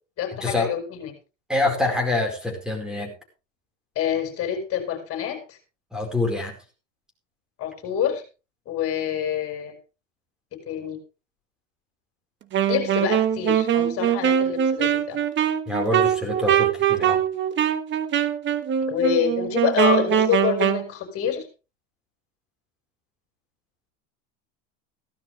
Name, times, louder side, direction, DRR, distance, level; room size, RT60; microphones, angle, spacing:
voice 1, 0.2-1.1 4.0-5.6 7.6-8.2 8.7-9.7 10.7-11.0 12.7-15.2 18.9-21.5, left 9 dB, 35° left, 5 dB, 5.5 m, -26 dB
voice 2, 1.5-3.1 5.9-6.5 15.7-17.2, left 2 dB, ahead, 3 dB, 4.7 m, -26 dB
Wind instrument woodwind instrument, 12.5-20.9, right 9 dB, 30° right, 1.2 m, -22 dB
16.0 x 12.5 x 3.4 m, 0.32 s
supercardioid pair, 125°, 37 cm